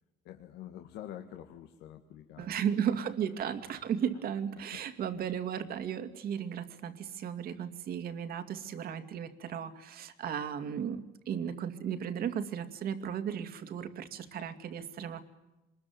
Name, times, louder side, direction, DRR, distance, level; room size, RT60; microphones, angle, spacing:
voice 1, 0.3-2.6 4.7-4.8, left 11 dB, 85° left, 5 dB, 1.9 m, -46 dB
voice 2, 2.4-15.2, right 8 dB, 60° right, 9 dB, 2.4 m, -35 dB
26.0 x 21.0 x 9.4 m, 1.0 s
cardioid pair, 110°, 17 cm